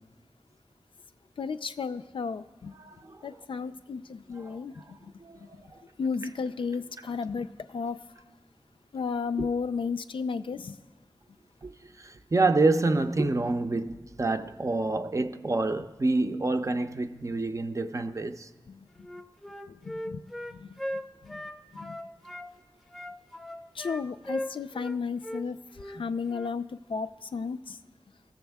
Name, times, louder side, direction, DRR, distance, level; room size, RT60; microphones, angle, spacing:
voice 1, 1.4-2.7 3.2-5.6 6.0-8.0 8.9-10.8 18.7-19.1 19.7-20.2 20.5-21.4 21.7-22.0 23.7-27.8, left 5 dB, 80° left, 0.4 m, -34 dB
voice 2, 2.8-3.2 5.2-5.6 9.4-9.5 11.6-11.7 12.0-18.5, right 2 dB, 35° right, 0.5 m, -27 dB
Wind instrument woodwind instrument, 19.0-22.5 22.9-25.0 25.2-25.4 25.7-26.0 26.3-26.5, left 1 dB, ahead, 0.6 m, -38 dB
18.0 x 7.1 x 3.4 m
wide cardioid pair, 85°, 9 cm